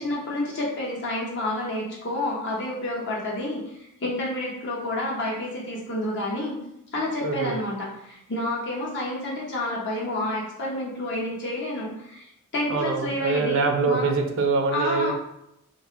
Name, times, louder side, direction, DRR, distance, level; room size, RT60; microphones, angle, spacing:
voice 1, 0.0-6.5 6.9-12.3 12.5-14.1 14.7-15.1, left 1 dB, 55° left, -4 dB, 0.8 m, -29 dB
voice 2, 7.2-7.5 12.7-15.1, right 4 dB, 60° right, 3 dB, 0.4 m, -24 dB
2.4 x 2.3 x 2.8 m, 0.80 s
head